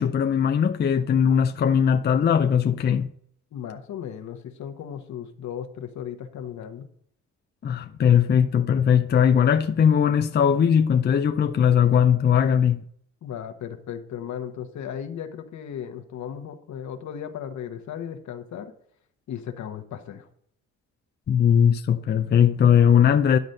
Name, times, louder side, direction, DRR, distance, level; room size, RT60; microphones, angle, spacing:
voice 1, 0.0-3.1 7.6-12.8 21.3-23.4, left 8 dB, 35° left, 0.5 m, -19 dB
voice 2, 3.5-6.9 13.2-18.7 19.3-20.3, left 9 dB, 70° left, 1.1 m, -36 dB
10.5 x 4.0 x 6.5 m
cardioid pair, 90°, 30 cm